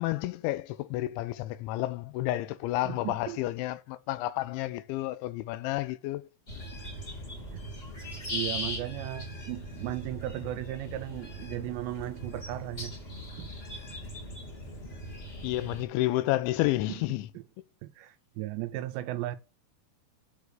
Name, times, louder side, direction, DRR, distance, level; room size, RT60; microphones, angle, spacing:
voice 1, 0.0-6.2 15.4-17.3, left 16 dB, 85° left, 2.9 m, -30 dB
voice 2, 2.8-3.4 7.5-7.6 8.0-13.0 13.4-13.5 16.9-17.0 17.3-17.4 17.8-19.4, right 15 dB, 80° right, 2.6 m, -36 dB
sound 1, 6.5-15.8, equal, 25° left, 1.2 m, -39 dB
8.5 x 4.8 x 6.6 m
omnidirectional pair, 5.4 m